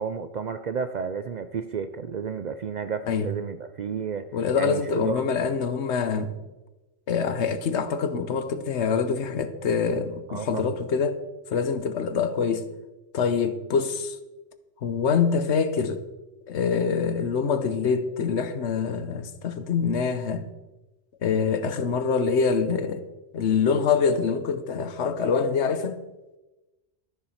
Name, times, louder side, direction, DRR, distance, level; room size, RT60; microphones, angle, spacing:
voice 1, 0.0-4.3 4.6-5.2 10.3-10.6, right 6 dB, 55° right, 0.5 m, -32 dB
voice 2, 4.3-6.3 7.1-11.2 11.5-12.7 13.1-14.2 14.8-16.0 16.5-20.5 21.2-23.0 23.3-26.0, left 5 dB, 75° left, 1.1 m, -25 dB
13.0 x 7.1 x 5.7 m
omnidirectional pair, 1.2 m